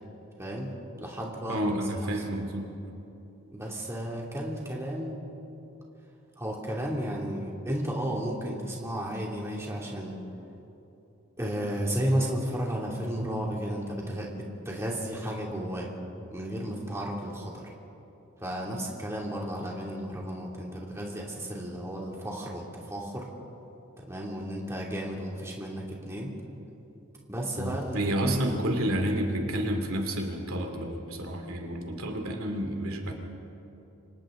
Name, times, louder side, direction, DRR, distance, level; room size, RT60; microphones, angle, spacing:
voice 1, 0.4-0.7 1.0-1.7 2.1-2.2 3.5-5.2 6.4-10.2 11.4-15.9 16.3-17.7 18.4-23.3 24.0-26.3 27.3-28.4, equal, 15° right, -3 dB, 2.7 m, -33 dB
voice 2, 1.5-2.7 27.6-33.1, right 1 dB, 85° right, 3 dB, 2.7 m, -30 dB
29.0 x 25.5 x 3.9 m, 3.0 s
head